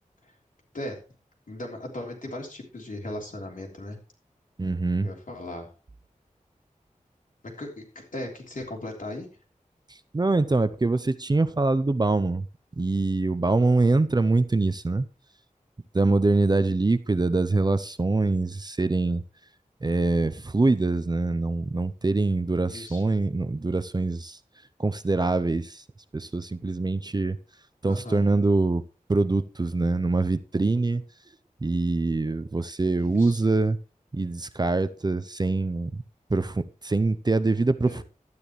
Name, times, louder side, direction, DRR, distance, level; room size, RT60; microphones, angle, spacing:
voice 1, 1.5-4.0 5.0-5.7 7.6-9.3 22.6-23.0 27.9-28.2 33.0-33.4 37.8-38.0, left 1 dB, 70° left, 3.3 m, -37 dB
voice 2, 4.6-5.1 10.1-12.4 12.8-15.1 15.9-19.2 19.8-24.4 24.8-25.8 26.1-27.4 27.8-28.8 29.1-31.0 31.6-33.8 34.1-35.9 36.3-38.0, right 3 dB, 30° right, 0.6 m, -24 dB
12.0 x 9.6 x 3.2 m
wide cardioid pair, 80°, 14 cm